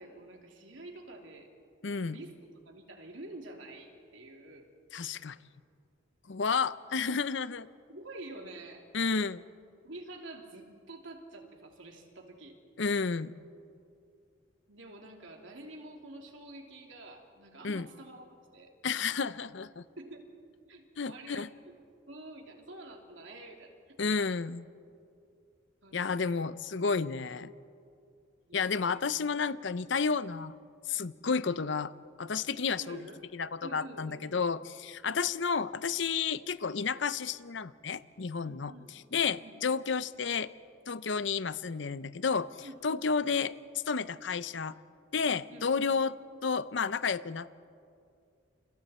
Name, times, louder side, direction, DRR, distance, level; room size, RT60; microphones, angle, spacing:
voice 1, 0.0-1.5 2.0-4.7 7.9-8.9 9.8-12.6 14.7-18.7 20.0-20.3 20.7-21.7 22.1-24.0 25.8-26.3 28.5-29.1 32.8-33.2 33.6-34.4 35.2-35.4 38.4-39.0 39.4-39.6 42.6-43.1 45.5-45.9, right 2 dB, 75° right, 2 dB, 3.0 m, -48 dB
voice 2, 1.8-2.2 4.9-5.4 6.3-7.7 8.9-9.4 12.8-13.3 17.6-17.9 18.8-19.8 21.0-21.5 24.0-24.6 25.9-27.5 28.5-30.5 30.9-31.9 32.2-33.0 33.3-40.5 40.9-43.5 43.9-44.7 45.1-46.2 46.4-47.6, left 5 dB, 70° left, 15 dB, 0.7 m, -31 dB
30.0 x 28.5 x 4.4 m, 2.4 s
head